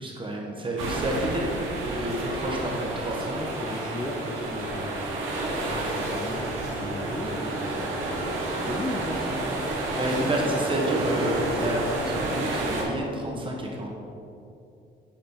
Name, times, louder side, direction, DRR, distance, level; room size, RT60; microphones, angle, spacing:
voice 1, 0.0-1.4 1.8-3.4 10.0-13.9, right 1 dB, 25° right, -1 dB, 1.3 m, -29 dB
sound 1, 0.8-12.8, right 2 dB, 85° right, 1.2 m, -30 dB
voice 2, 3.4-5.0 5.7-9.6 10.2-10.6, left 1 dB, 15° left, 0 dB, 0.5 m, -36 dB
8.7 x 3.2 x 4.4 m, 2.7 s
cardioid pair, 90°, 20 cm